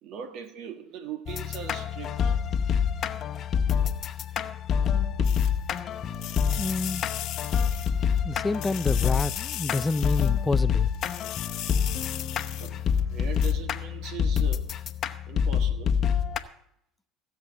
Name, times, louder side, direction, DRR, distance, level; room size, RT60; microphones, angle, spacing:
voice 1, 0.0-2.4 5.2-5.4 12.6-12.8 13.1-14.7 15.3-16.0, right 8 dB, 65° right, 1.7 m, -40 dB
sound 1, 1.3-16.4, left 7 dB, 45° left, 0.9 m, -27 dB
sound 2, 5.2-5.8 6.1-8.2 8.5-10.6 10.9-13.0 13.3-13.5, left 14 dB, 65° left, 1.1 m, -37 dB
voice 2, 6.6-7.1 8.2-10.9, left 3 dB, 15° left, 0.4 m, -28 dB
16.0 x 7.5 x 7.5 m
supercardioid pair, 95°, 0 cm